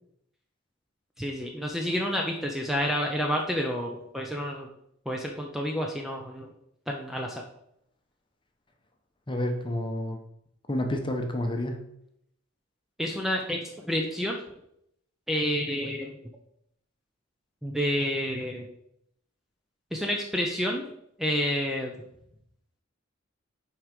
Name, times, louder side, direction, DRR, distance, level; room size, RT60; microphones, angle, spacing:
voice 1, 1.2-4.7 5.1-6.5 6.9-7.4 13.0-14.4 15.3-16.2 17.6-18.7 19.9-20.9 21.2-22.0, equal, ahead, 0 dB, 0.6 m, -29 dB
voice 2, 9.3-10.2 10.7-11.9, left 1 dB, 25° left, 4 dB, 0.9 m, -29 dB
6.1 x 4.8 x 5.2 m, 0.76 s
head